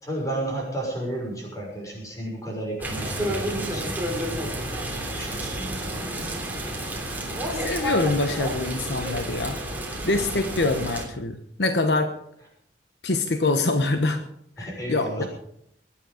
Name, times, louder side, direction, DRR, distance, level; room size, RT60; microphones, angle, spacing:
voice 1, 0.0-4.0 4.4-4.5 5.1-6.4 7.4-7.7 14.6-15.3, right 1 dB, 20° left, -2 dB, 6.3 m, -33 dB
sound 1, 2.8-11.1, right 1 dB, 10° right, 3.3 m, -30 dB
voice 2, 7.5-9.6 10.0-12.1 13.0-14.2 14.6-15.2, left 2 dB, 70° left, 7 dB, 1.1 m, -25 dB
22.5 x 10.0 x 5.1 m, 0.71 s
head